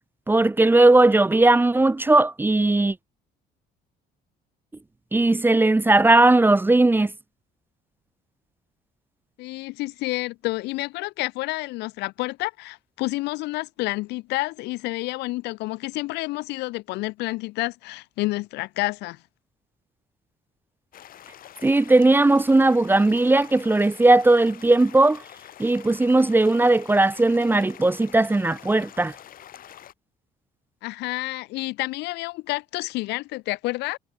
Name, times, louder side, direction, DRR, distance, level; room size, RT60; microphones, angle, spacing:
voice 1, 0.3-2.9 5.1-7.1 21.6-25.2 25.6-29.1, right 2 dB, 10° right, 1.0 m, -18 dB
voice 2, 9.4-19.2 30.8-34.0, left 20 dB, 90° left, 3.2 m, -29 dB
sound 1, 20.9-29.9, left 11 dB, 60° left, 3.2 m, -46 dB
cardioid pair, 110°, 17 cm